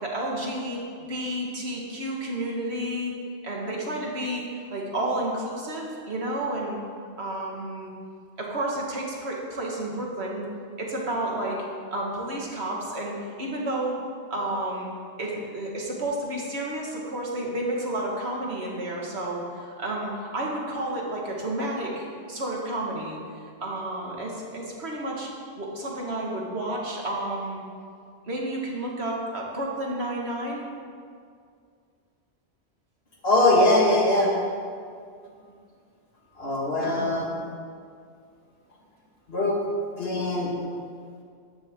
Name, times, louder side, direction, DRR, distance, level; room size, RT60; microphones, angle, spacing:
voice 1, 0.0-0.8 1.1-3.1 3.4-6.8 7.2-7.9 8.4-10.5 10.8-11.6 11.9-14.0 14.3-14.9 15.2-23.2 23.6-25.3 25.6-27.6 28.3-30.7 36.8-37.4 40.1-40.2, right 1 dB, 75° right, -2 dB, 2.2 m, -31 dB
voice 2, 33.2-34.3 36.4-37.3 39.3-39.6 40.0-40.5, left 1 dB, 65° left, -3 dB, 2.3 m, -21 dB
14.0 x 10.5 x 3.8 m, 2.2 s
omnidirectional pair, 1.1 m